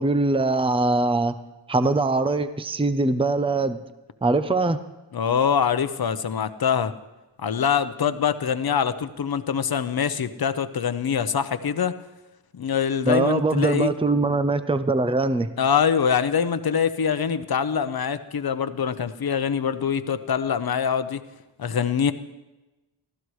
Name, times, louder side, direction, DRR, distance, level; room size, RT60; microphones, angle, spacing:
voice 1, 0.0-1.3 1.7-3.8 4.2-4.8 13.0-15.5, right 2 dB, 10° right, 11 dB, 0.7 m, -22 dB
voice 2, 5.1-6.9 7.4-11.9 12.5-13.9 15.6-21.2 21.6-22.1, left 7 dB, 50° left, 11 dB, 0.9 m, -24 dB
24.0 x 15.0 x 3.2 m, 1.1 s
wide cardioid pair, 80°, 45 cm